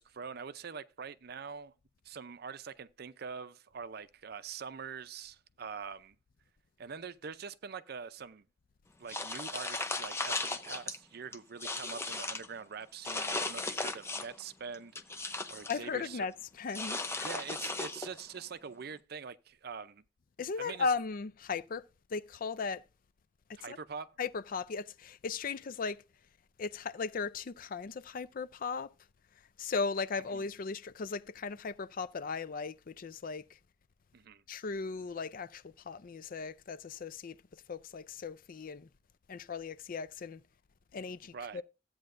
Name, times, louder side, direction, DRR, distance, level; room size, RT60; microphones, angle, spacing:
voice 1, 0.0-1.7 2.0-6.1 6.8-8.5 9.0-15.2 15.5-16.3 17.2-20.0 20.6-20.9 23.6-24.2 30.3-30.4 34.1-34.4 41.3-41.6, right 6 dB, 60° right, 0.5 m, -44 dB
sound 1, 9.1-11.0 11.3-12.5 13.0-14.4 14.7-15.8 16.7-18.3, left 3 dB, 15° left, 0.7 m, -36 dB
voice 2, 15.7-17.3 20.4-22.8 23.5-23.8 24.2-26.0 26.6-28.9 29.6-33.6 34.5-38.9 39.3-40.4 40.9-41.6, left 4 dB, 50° left, 0.5 m, -37 dB
13.5 x 8.6 x 2.5 m
head